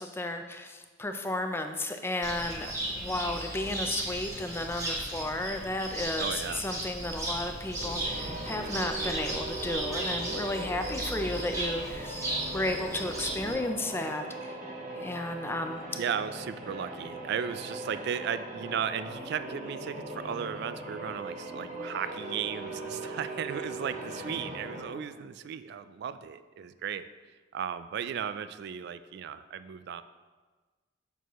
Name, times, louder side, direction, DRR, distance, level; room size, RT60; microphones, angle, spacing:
voice 1, 0.0-12.2 12.5-14.6 14.9-15.9, left 1 dB, 10° left, 6 dB, 0.4 m, -33 dB
Cricket, 2.2-13.5, right 1 dB, 15° right, 1.4 m, -35 dB
voice 2, 6.2-6.6 15.9-27.0 27.5-30.0, right 8 dB, 55° right, 12 dB, 0.3 m, -35 dB
sound 1, 7.6-25.1, right 2 dB, 40° right, 1.0 m, -40 dB
6.9 x 6.2 x 3.0 m, 1.3 s
head